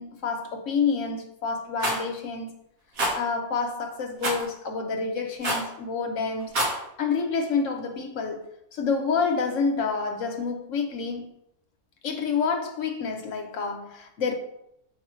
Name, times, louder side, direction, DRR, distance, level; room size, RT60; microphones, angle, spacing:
voice 1, 0.0-2.5 3.1-6.6 7.0-11.3 12.0-14.3, left 5 dB, 60° left, 1.1 m, -28 dB
Rattle, 1.8-2.0 3.0-3.1 4.2-4.4 5.4-5.7 6.4-6.8, right 1 dB, 65° right, 1.7 m, -26 dB
6.6 x 4.7 x 3.1 m
omnidirectional pair, 1.6 m